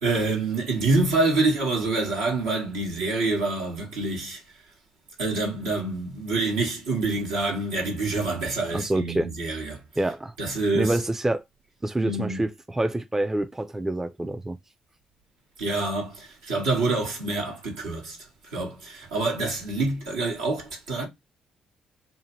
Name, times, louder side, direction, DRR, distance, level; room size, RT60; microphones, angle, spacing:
voice 1, 0.0-4.4 5.2-9.8 10.4-11.0 12.0-12.4 15.6-18.2 18.5-21.1, right 3 dB, 85° right, 1.0 m, -26 dB
voice 2, 8.7-9.3 10.0-10.3 10.7-11.4 11.8-14.6, right 1 dB, 15° right, 0.4 m, -26 dB
2.8 x 2.2 x 2.9 m
hypercardioid pair, 45°, 3 cm